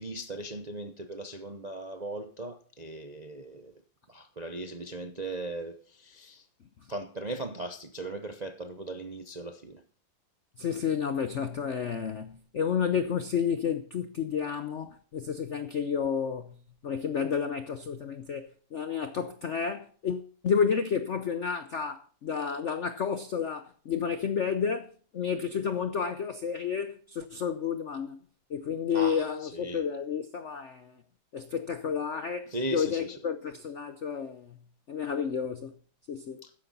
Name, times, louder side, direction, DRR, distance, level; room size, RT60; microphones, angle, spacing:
voice 1, 0.0-3.7 4.1-6.5 6.9-9.8 28.9-29.8 32.5-33.2 36.4-36.5, right 2 dB, 50° right, 0.5 m, -38 dB
voice 2, 10.6-16.5 16.8-28.2 28.5-30.9 31.3-34.6 34.9-35.7 36.1-36.4, left 7 dB, 70° left, 0.7 m, -31 dB
13.5 x 10.5 x 4.1 m
omnidirectional pair, 2.2 m